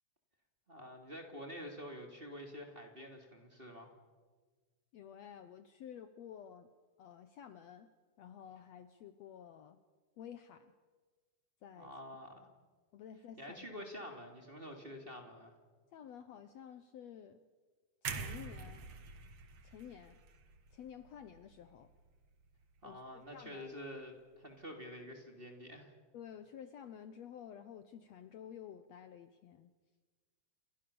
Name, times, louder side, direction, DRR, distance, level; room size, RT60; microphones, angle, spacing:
voice 1, 0.7-3.9 11.8-12.5 13.4-15.5 22.8-25.9, equal, 15° right, 3 dB, 3.0 m, -48 dB
voice 2, 4.9-6.7 7.0-7.9 8.2-9.8 10.2-10.7 11.6-11.9 12.9-13.7 15.9-17.4 18.0-18.9 19.6-20.2 20.7-21.9 22.8-23.7 26.1-29.7, left 9 dB, 65° left, 10 dB, 1.9 m, -51 dB
sound 1, 18.0-22.1 22.4-22.6, right 5 dB, 50° right, 2.4 m, -46 dB
28.5 x 25.0 x 7.0 m, 1.4 s
omnidirectional pair, 3.7 m